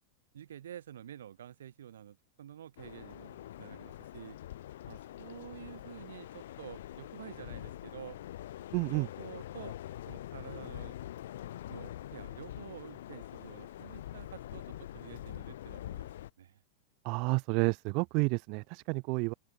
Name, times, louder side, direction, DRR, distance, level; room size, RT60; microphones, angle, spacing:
voice 1, 0.3-4.4 4.9-8.2 8.8-9.8 10.1-11.0 11.7-16.1 16.4-16.6, right 10 dB, 65° right, 3.7 m, -49 dB
sound 1, 2.8-16.3, left 13 dB, 60° left, 2.6 m, -45 dB
voice 2, 8.7-9.1 17.0-19.3, right 32 dB, 45° right, 0.5 m, -30 dB
open air
figure-of-eight pair, 90°, 0 cm